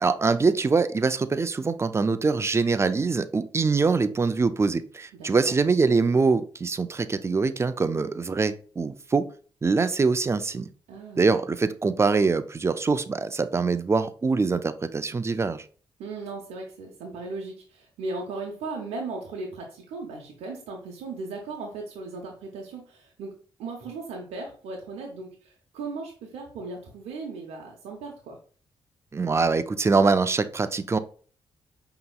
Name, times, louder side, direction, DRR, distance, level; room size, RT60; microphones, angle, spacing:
voice 1, 0.0-9.3 9.6-10.7 11.2-15.6 29.1-31.0, right 4 dB, 25° right, 12 dB, 0.4 m, -24 dB
voice 2, 5.2-5.5 10.9-11.2 16.0-28.4, right 3 dB, 85° right, 0 dB, 0.7 m, -37 dB
5.1 x 2.9 x 2.3 m, 0.41 s
supercardioid pair, 60°, 10 cm